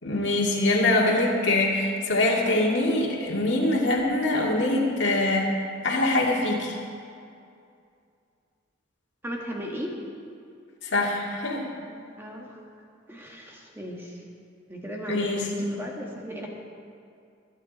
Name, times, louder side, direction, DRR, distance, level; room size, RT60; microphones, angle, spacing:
voice 1, 0.0-5.5 5.8-6.8 10.8-11.6 15.1-15.5, left 2 dB, 60° left, -3 dB, 2.3 m, -23 dB
voice 2, 9.2-10.0 11.9-12.6 13.1-14.2 14.7-16.5, equal, 10° right, -1 dB, 1.6 m, -36 dB
21.5 x 8.6 x 4.2 m, 2.4 s
head